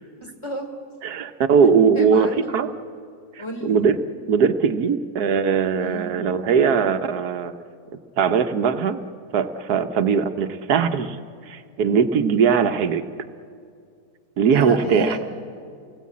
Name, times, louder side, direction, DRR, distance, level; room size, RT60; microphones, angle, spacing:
voice 1, 0.2-0.7 1.9-2.6 3.4-3.8 5.8-6.1 14.5-15.2, equal, 15° left, 2 dB, 3.2 m, -31 dB
voice 2, 1.0-2.3 2.5-2.7 3.6-4.0 4.3-7.5 8.2-9.0 9.3-11.2 11.4-13.0 14.4-15.2, right 6 dB, 85° right, 9 dB, 1.4 m, -20 dB
29.5 x 18.5 x 8.5 m, 2.3 s
omnidirectional pair, 1.6 m